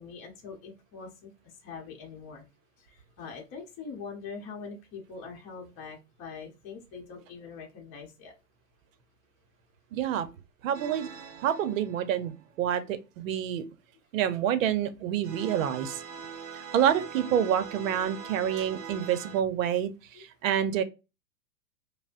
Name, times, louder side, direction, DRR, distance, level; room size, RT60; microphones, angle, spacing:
voice 1, 0.0-2.4 2.8-8.3 16.1-16.2 20.1-20.2, left 5 dB, 25° left, 1.0 m, -43 dB
voice 2, 9.9-10.3 10.6-11.1 11.4-13.6 14.1-16.0 16.7-20.8, right 9 dB, 50° right, 0.8 m, -28 dB
sound 1, 10.7-12.6 15.2-19.4, right 7 dB, 30° right, 0.4 m, -43 dB
5.0 x 2.1 x 2.5 m
hypercardioid pair, 120°, 50 cm